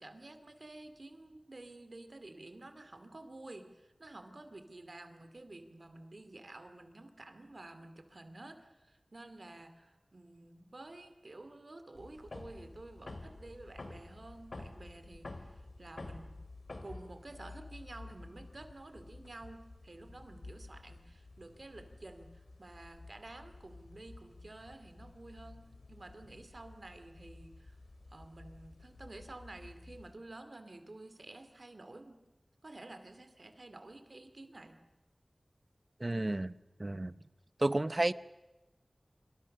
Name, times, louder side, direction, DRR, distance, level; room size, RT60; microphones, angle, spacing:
voice 1, 0.0-16.4 16.8-27.8 28.1-32.2 32.6-34.8, right 2 dB, 65° right, 9 dB, 2.5 m, -51 dB
sound 1, 12.0-30.2, left 2 dB, 75° left, 2.5 m, -51 dB
voice 2, 36.0-36.5 36.8-37.1 37.6-38.1, right 2 dB, 45° right, 16 dB, 0.8 m, -31 dB
26.0 x 26.0 x 6.7 m, 1.1 s
wide cardioid pair, 40°, 0 cm